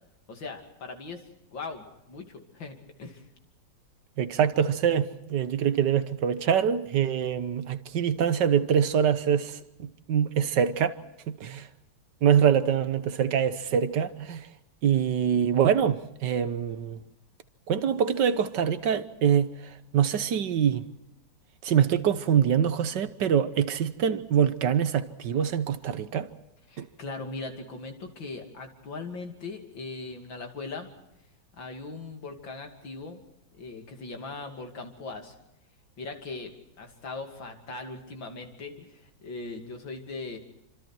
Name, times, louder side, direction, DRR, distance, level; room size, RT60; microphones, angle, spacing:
voice 1, 0.3-1.2 1.5-3.2 26.7-30.9 31.5-33.2 33.5-35.3 36.0-40.4, left 3 dB, 85° left, 3.4 m, -39 dB
voice 2, 4.2-11.0 11.3-11.7 12.2-14.5 14.8-17.0 17.7-20.9 21.6-26.3 26.8-26.9, right 8 dB, 70° right, 1.7 m, -24 dB
27.0 x 26.0 x 4.5 m
omnidirectional pair, 2.0 m